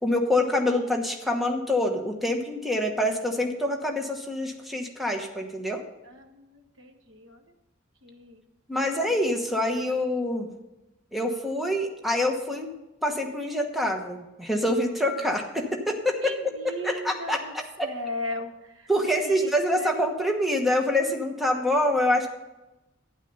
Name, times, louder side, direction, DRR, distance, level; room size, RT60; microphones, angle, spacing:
voice 1, 0.0-5.8 8.7-10.5 11.1-12.7 13.0-16.3 16.8-17.9 18.9-22.3, left 1 dB, ahead, 2 dB, 1.2 m, -26 dB
voice 2, 6.0-7.4 8.0-8.4 8.8-9.0 16.2-17.5 17.8-19.9, left 1 dB, 75° right, 5 dB, 1.4 m, -38 dB
12.0 x 10.0 x 5.5 m, 0.99 s
head